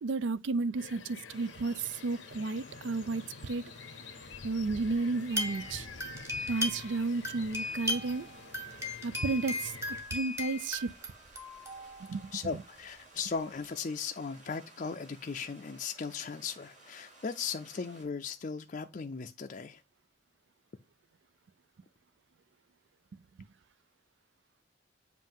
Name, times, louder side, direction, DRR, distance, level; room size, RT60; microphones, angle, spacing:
voice 1, 0.0-3.6 4.4-5.9 6.5-8.3 9.0-10.9 12.0-12.6, right 3 dB, 70° right, 0.4 m, -33 dB
sound 1, 0.8-10.0, left 4 dB, 80° left, 0.7 m, -48 dB
sound 2, 1.3-18.0, right 2 dB, 40° right, 3.4 m, -57 dB
sound 3, 5.3-7.0 7.2-12.3 13.2-13.3 13.6-13.7, left 1 dB, 15° right, 1.1 m, -37 dB
voice 2, 12.3-19.8, left 5 dB, 40° left, 0.4 m, -37 dB
7.5 x 2.6 x 5.3 m
head